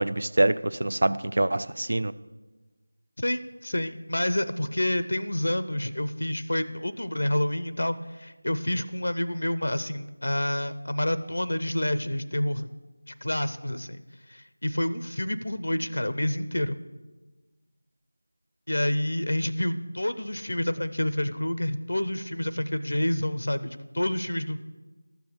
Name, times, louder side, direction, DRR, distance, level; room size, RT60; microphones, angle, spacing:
voice 1, 0.0-2.1, right 1 dB, 60° right, 15 dB, 0.4 m, -25 dB
voice 2, 3.2-12.7 13.1-14.0 14.3-16.8 18.7-24.6, left 1 dB, 70° left, 12 dB, 0.5 m, -28 dB
12.5 x 7.0 x 6.2 m, 1.2 s
figure-of-eight pair, 170°, 0 cm